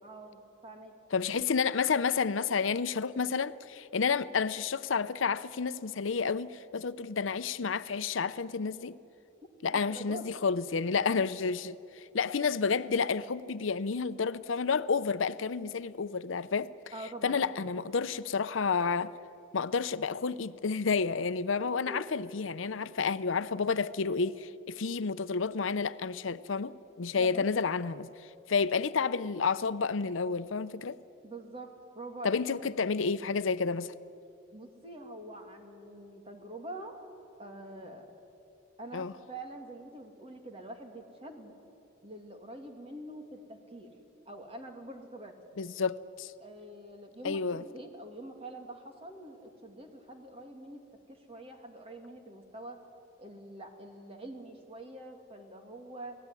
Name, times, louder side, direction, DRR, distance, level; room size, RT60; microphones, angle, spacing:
voice 1, 0.0-0.9 9.7-10.2 16.9-17.7 21.9-22.1 27.2-27.5 31.2-31.7 31.9-32.9 34.5-37.0 37.4-38.1 38.8-41.5 42.0-43.9 44.3-45.3 46.4-50.8 51.1-52.8 53.2-56.2, right 1 dB, 30° right, 2.6 m, -45 dB
voice 2, 1.1-9.0 9.6-16.7 17.2-19.1 19.5-31.0 32.2-33.9 38.9-39.1 45.6-46.3 47.2-47.6, left 5 dB, 80° left, 0.6 m, -30 dB
29.5 x 18.5 x 9.8 m
head